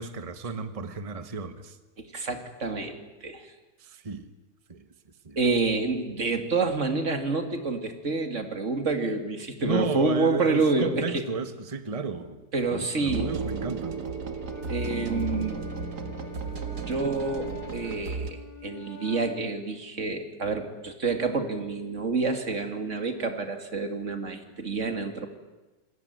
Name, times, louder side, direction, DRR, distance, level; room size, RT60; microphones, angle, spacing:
voice 1, 0.0-1.8 3.8-4.3 4.7-4.9 5.2-5.4 9.6-14.1, right 4 dB, 25° right, 10 dB, 1.3 m, -33 dB
voice 2, 2.0-3.5 5.4-11.2 12.5-13.3 14.7-15.6 16.9-25.3, right 3 dB, 50° right, 6 dB, 2.7 m, -28 dB
sound 1, 13.1-18.3, right 4 dB, 85° right, 2.3 m, -34 dB
Wind instrument woodwind instrument, 14.4-19.5, left 3 dB, 60° left, 4.1 m, -45 dB
27.5 x 20.5 x 9.4 m, 1.1 s
omnidirectional pair, 1.7 m